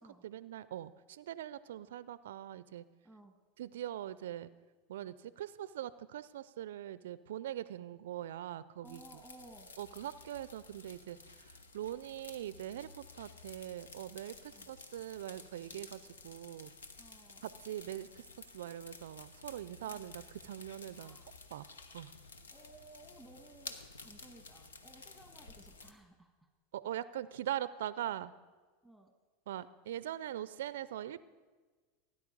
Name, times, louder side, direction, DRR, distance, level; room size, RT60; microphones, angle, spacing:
voice 1, 0.2-2.8 3.6-4.5 4.9-9.0 9.8-16.7 17.4-21.2 21.5-21.7 21.9-22.1 26.7-28.3 29.5-31.2, right 12 dB, 75° right, 17 dB, 0.4 m, -42 dB
voice 2, 3.0-3.4 8.8-9.7 14.5-14.7 17.0-17.5 21.0-21.3 22.5-26.5 28.8-29.1, right 2 dB, ahead, 4 dB, 1.6 m, -57 dB
sound 1, 8.8-25.9, left 4 dB, 85° left, 1.0 m, -53 dB
17.5 x 9.7 x 5.2 m, 1.4 s
hypercardioid pair, 90°, 0 cm